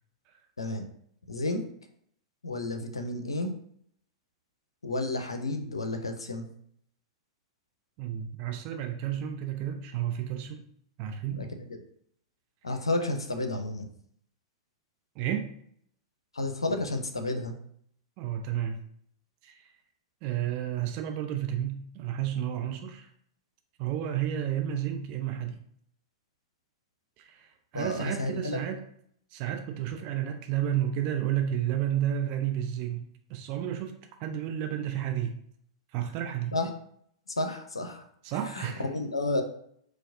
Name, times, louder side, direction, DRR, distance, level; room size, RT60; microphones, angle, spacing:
voice 1, 1.3-1.6 2.4-3.5 4.8-6.5 11.3-11.8 12.6-13.9 16.3-17.5 27.7-28.6 36.5-36.7 37.3-38.0 38.5-39.4, left 2 dB, 85° left, 7 dB, 0.5 m, -31 dB
voice 2, 8.0-10.6 11.0-11.5 15.2-15.5 18.2-18.8 19.4-19.7 20.2-23.1 23.8-25.6 27.2-28.8 29.3-33.0 33.3-33.9 34.2-35.4 35.9-36.5 38.2-38.9, right 10 dB, 45° right, 5 dB, 0.4 m, -31 dB
4.4 x 2.2 x 2.7 m, 0.66 s
figure-of-eight pair, 100°, 3 cm